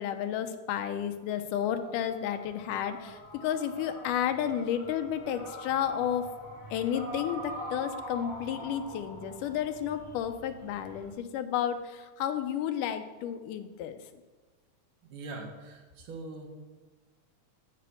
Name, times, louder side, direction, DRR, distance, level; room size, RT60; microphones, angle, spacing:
voice 1, 0.0-6.3 6.7-14.0, left 9 dB, 90° left, 8 dB, 2.3 m, -32 dB
sound 1, 1.6-11.1, equal, 25° left, 2.7 m, -44 dB
voice 2, 15.1-16.5, right 3 dB, 75° right, 1 dB, 3.2 m, -42 dB
14.5 x 5.1 x 6.3 m, 1.3 s
omnidirectional pair, 3.6 m